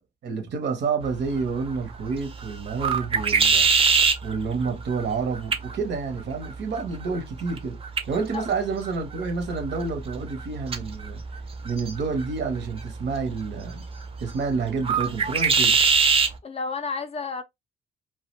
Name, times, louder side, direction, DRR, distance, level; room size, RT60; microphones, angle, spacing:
voice 1, 0.2-3.7 4.2-7.8 8.1-11.2 11.6-13.8 14.2-15.8, right 4 dB, 60° right, 0.8 m, -29 dB
sound 1, 1.0-16.4, right 5 dB, 30° right, 0.5 m, -26 dB
voice 2, 16.4-17.4, left 4 dB, 30° left, 0.4 m, -31 dB
2.3 x 2.1 x 2.9 m
cardioid pair, 90°, 20 cm